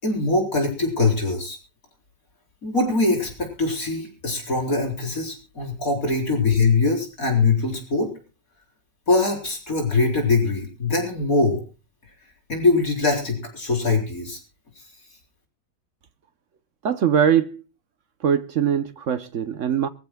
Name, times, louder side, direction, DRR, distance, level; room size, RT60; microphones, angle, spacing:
voice 1, 0.0-1.6 2.6-8.1 9.1-11.6 12.5-14.4, left 3 dB, 50° left, 4.6 m, -22 dB
voice 2, 16.8-17.6 18.2-19.9, right 8 dB, 55° right, 1.0 m, -21 dB
23.5 x 15.0 x 2.2 m
omnidirectional pair, 1.9 m